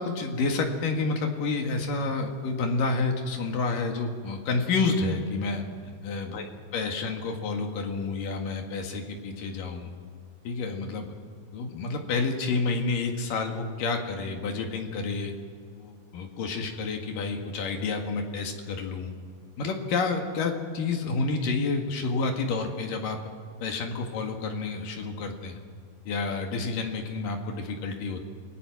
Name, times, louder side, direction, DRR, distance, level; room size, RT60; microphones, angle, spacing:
voice 1, 0.0-6.4 6.7-9.9 10.4-11.1 11.5-15.3 15.7-19.1 19.6-23.2 23.6-25.6 26.1-28.3, left 3 dB, 75° left, 3 dB, 3.5 m, -29 dB
28.0 x 19.5 x 6.1 m, 2.1 s
omnidirectional pair, 4.0 m